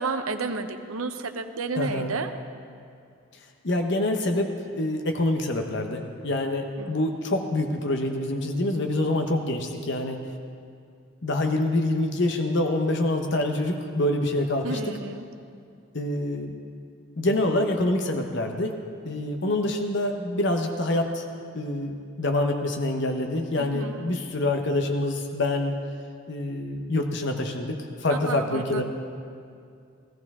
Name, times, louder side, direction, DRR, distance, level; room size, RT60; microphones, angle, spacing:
voice 1, 0.0-2.3 6.8-7.0 14.6-15.2 23.6-24.2 28.1-28.8, right 3 dB, 85° right, 8 dB, 0.8 m, -31 dB
voice 2, 1.8-2.1 3.6-10.2 11.2-14.8 15.9-16.5 17.2-18.7 19.0-21.2 21.5-25.7 26.3-28.8, left 1 dB, 55° left, 4 dB, 0.9 m, -26 dB
17.0 x 14.5 x 3.6 m, 2.3 s
head